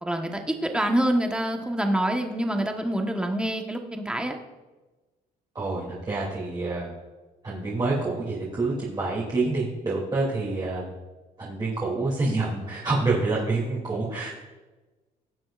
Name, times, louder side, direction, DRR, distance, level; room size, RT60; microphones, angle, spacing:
voice 1, 0.0-4.4, right 1 dB, 5° right, 3 dB, 1.2 m, -26 dB
voice 2, 5.5-6.9 7.4-10.8 11.4-14.3, right 3 dB, 25° right, -5 dB, 2.8 m, -27 dB
18.0 x 7.7 x 2.5 m, 1.2 s
cardioid pair, 110°, 17 cm